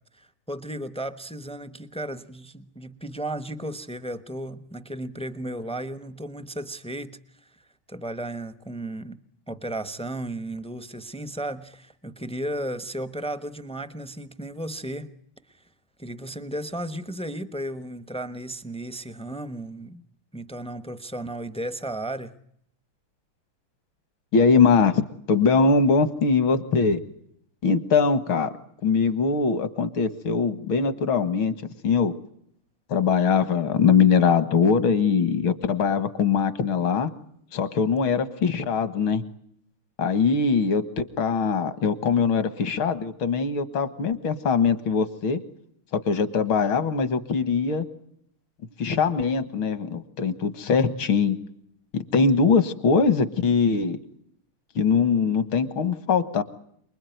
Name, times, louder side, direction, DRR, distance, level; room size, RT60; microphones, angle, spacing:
voice 1, 0.1-7.6 7.9-9.2 9.5-15.1 15.5-15.6 16.0-20.0 20.3-22.4, right 1 dB, 5° left, 12 dB, 0.4 m, -34 dB
voice 2, 24.3-25.0 25.3-27.0 27.6-28.5 28.8-31.5 31.8-32.2 32.9-37.1 37.5-39.2 40.0-45.4 45.9-47.9 48.8-51.4 51.9-54.0 54.8-56.4, left 5 dB, 70° left, 12 dB, 2.4 m, -22 dB
28.0 x 21.0 x 9.3 m, 0.70 s
omnidirectional pair, 2.3 m